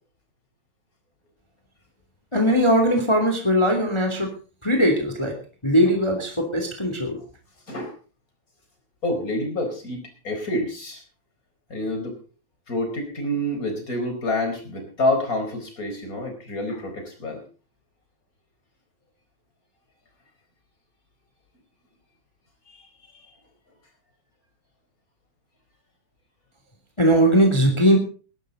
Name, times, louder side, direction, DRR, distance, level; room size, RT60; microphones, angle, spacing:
voice 1, 2.3-4.3 4.6-5.3 5.6-7.2 27.0-28.0, equal, 10° left, 4 dB, 2.6 m, -19 dB
voice 2, 9.0-11.0 11.7-12.1 12.7-17.4 22.7-22.9 23.1-23.3, left 1 dB, 30° left, 4 dB, 4.6 m, -28 dB
20.5 x 12.0 x 4.0 m, 0.37 s
omnidirectional pair, 3.3 m